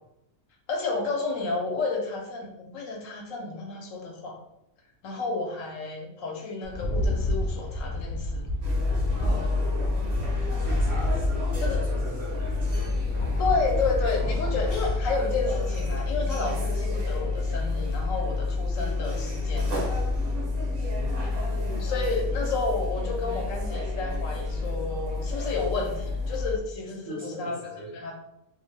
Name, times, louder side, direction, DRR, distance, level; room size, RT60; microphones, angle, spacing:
voice 1, 0.7-4.4 5.0-8.5 11.6-11.8 13.4-19.8 21.8-27.6 27.9-28.1, left 3 dB, 85° left, 1 dB, 1.0 m, -31 dB
Rattle, 6.6-15.1, equal, 65° left, 0.8 m, -31 dB
sound 1, 8.6-26.6, left 3 dB, 50° right, 0.8 m, -28 dB
voice 2, 9.2-9.7 10.6-13.3 20.9-21.3 27.0-27.9, right 1 dB, 35° left, -6 dB, 0.5 m, -41 dB
2.5 x 2.1 x 3.2 m, 0.85 s
omnidirectional pair, 1.3 m